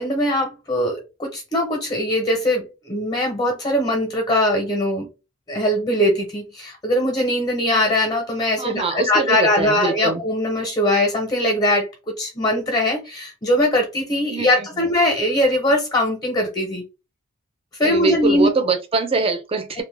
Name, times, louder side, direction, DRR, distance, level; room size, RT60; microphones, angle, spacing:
voice 1, 0.0-5.1 5.5-16.8 17.8-18.5 19.8-19.9, left 1 dB, 20° left, 0.7 m, -21 dB
voice 2, 8.6-10.2 14.3-14.7 17.8-19.8, right 3 dB, 30° right, 0.5 m, -23 dB
2.5 x 2.1 x 3.2 m
head